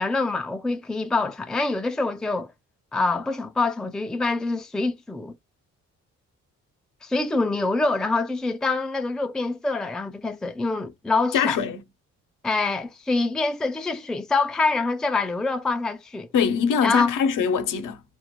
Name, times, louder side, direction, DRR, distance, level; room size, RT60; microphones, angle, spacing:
voice 1, 0.0-2.5 2.9-5.3 7.0-11.6 12.4-16.3 16.8-17.1, left 3 dB, ahead, 0.4 m, -25 dB
voice 2, 11.3-11.8 16.3-18.0, left 7 dB, 65° left, 0.8 m, -22 dB
2.4 x 2.0 x 2.8 m
supercardioid pair, 60°, 35 cm